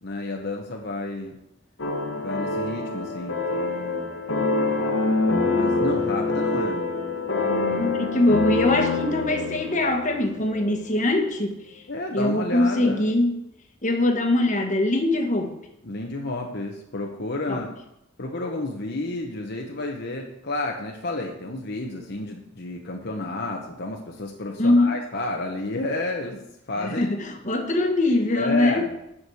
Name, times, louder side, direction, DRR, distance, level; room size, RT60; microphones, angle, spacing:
voice 1, 0.0-1.4 2.2-4.2 5.5-6.8 7.7-8.0 11.9-13.1 15.8-17.7 18.2-26.4 26.7-27.1 28.4-29.0, left 2 dB, 55° left, 1 dB, 1.1 m, -31 dB
sound 1, 1.8-10.8, left 3 dB, 80° left, 1.2 m, -26 dB
voice 2, 7.7-11.6 12.1-13.4 13.8-15.6 17.5-17.6 24.6-24.9 26.8-28.9, left 1 dB, 40° left, 4 dB, 1.4 m, -22 dB
9.9 x 6.3 x 6.4 m, 0.83 s
head